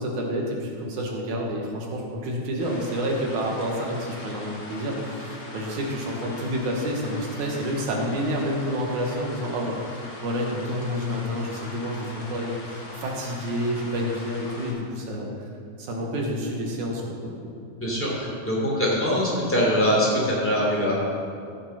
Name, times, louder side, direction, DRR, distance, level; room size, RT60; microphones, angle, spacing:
voice 1, 0.0-15.3 15.8-17.4, equal, 75° right, -1 dB, 2.6 m, -29 dB
sound 1, 2.6-14.7, left 2 dB, 50° left, 2.1 m, -41 dB
voice 2, 17.8-21.0, equal, 5° left, -5 dB, 2.4 m, -23 dB
15.0 x 5.4 x 5.6 m, 2.4 s
omnidirectional pair, 3.5 m